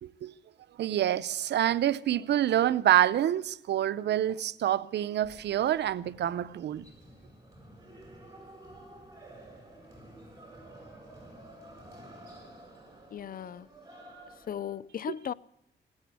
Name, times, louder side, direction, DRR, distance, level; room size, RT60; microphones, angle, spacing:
voice 1, 0.0-0.3 0.8-6.9, right 11 dB, 85° right, 0.6 m, -27 dB
sound 1, 5.2-14.8, right 1 dB, 20° right, 8.0 m, -51 dB
voice 2, 13.1-13.7 14.5-15.3, left 9 dB, 55° left, 0.5 m, -36 dB
18.0 x 9.8 x 8.2 m
cardioid pair, 90°, 17 cm